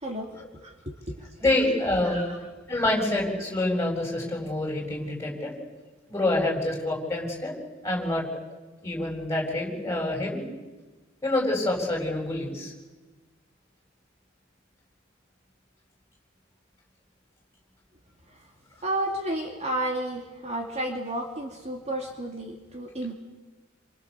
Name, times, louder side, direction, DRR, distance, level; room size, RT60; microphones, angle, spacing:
voice 1, 0.6-1.3 2.0-2.4 18.8-23.1, right 1 dB, 35° right, 1 dB, 2.8 m, -32 dB
voice 2, 1.4-2.2 2.7-5.5 6.1-7.5 7.8-8.2 8.8-10.5 11.2-12.7, left 2 dB, 15° left, -1 dB, 8.0 m, -27 dB
29.0 x 27.0 x 7.3 m, 1.2 s
head